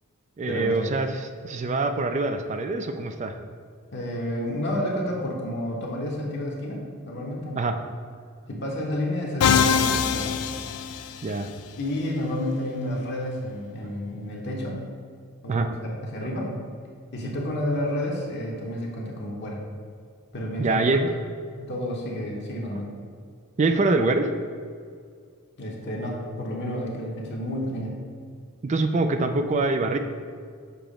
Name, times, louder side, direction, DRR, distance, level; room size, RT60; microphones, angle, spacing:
voice 1, 0.4-3.4 7.6-7.7 11.2-11.5 15.5-15.7 20.6-21.1 23.6-24.3 28.6-30.0, right 3 dB, 30° right, 7 dB, 0.3 m, -24 dB
voice 2, 3.9-7.6 8.5-10.3 11.8-14.8 15.4-16.5 17.1-19.6 20.3-21.0 21.6-22.9 25.6-28.0, left 1 dB, 50° left, -2 dB, 0.9 m, -30 dB
Musical instrument, 9.4-11.5, left 6 dB, 80° left, 0.4 m, -23 dB
6.8 x 3.0 x 5.0 m, 2.1 s
head